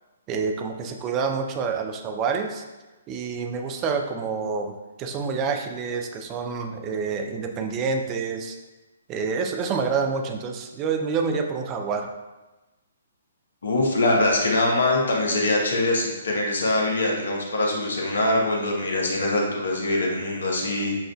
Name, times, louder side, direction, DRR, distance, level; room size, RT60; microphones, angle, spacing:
voice 1, 0.3-2.6 3.1-8.6 9.1-12.1, right 5 dB, 25° right, 4 dB, 0.5 m, -27 dB
voice 2, 13.6-20.9, left 2 dB, 70° left, -1 dB, 1.0 m, -23 dB
6.8 x 2.5 x 2.3 m, 1.1 s
figure-of-eight pair, 130°, 0 cm